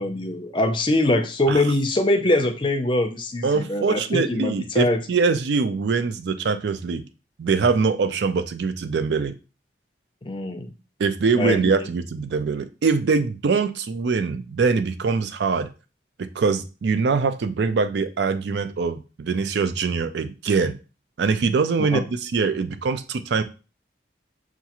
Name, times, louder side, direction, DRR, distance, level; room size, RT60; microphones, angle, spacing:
voice 1, 0.0-5.0 10.2-10.7 11.3-11.7 21.8-22.0, left 1 dB, 25° left, 5 dB, 0.4 m, -23 dB
voice 2, 3.4-7.0 7.4-9.3 11.0-15.7 16.2-20.8 21.2-23.4, right 4 dB, 65° right, 10 dB, 0.4 m, -23 dB
5.7 x 2.4 x 2.9 m, 0.33 s
head